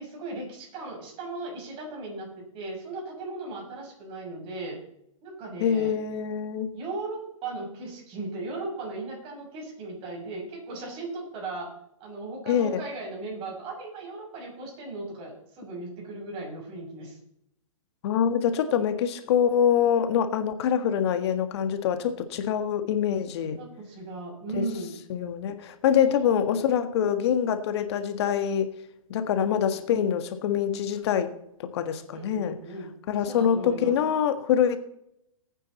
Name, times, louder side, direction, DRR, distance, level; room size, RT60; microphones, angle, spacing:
voice 1, 0.0-4.8 5.2-6.0 6.7-11.7 12.0-17.2 23.6-25.0 26.1-26.6 29.7-30.1 32.1-32.9 33.2-33.9, right 2 dB, 30° right, -1 dB, 6.6 m, -37 dB
voice 2, 5.6-6.7 12.5-12.8 18.0-23.6 24.6-24.7 25.1-28.7 29.1-31.3 31.6-32.6 33.1-34.8, left 8 dB, 50° left, 9 dB, 1.6 m, -25 dB
19.5 x 9.2 x 4.2 m, 0.78 s
hypercardioid pair, 130°, 18 cm